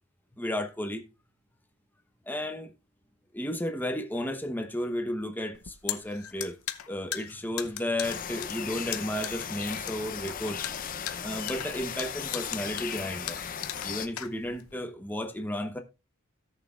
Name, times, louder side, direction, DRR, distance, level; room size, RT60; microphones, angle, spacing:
voice 1, 0.3-1.0 2.3-2.7 3.3-6.6 6.9-10.6 11.2-13.4 13.8-15.8, left 1 dB, 10° left, 0.9 m, -33 dB
sound 1, 5.5-14.7, left 12 dB, 75° left, 0.8 m, -38 dB
sound 2, 8.0-14.1, left 7 dB, 40° left, 0.7 m, -37 dB
17.5 x 6.6 x 2.4 m
head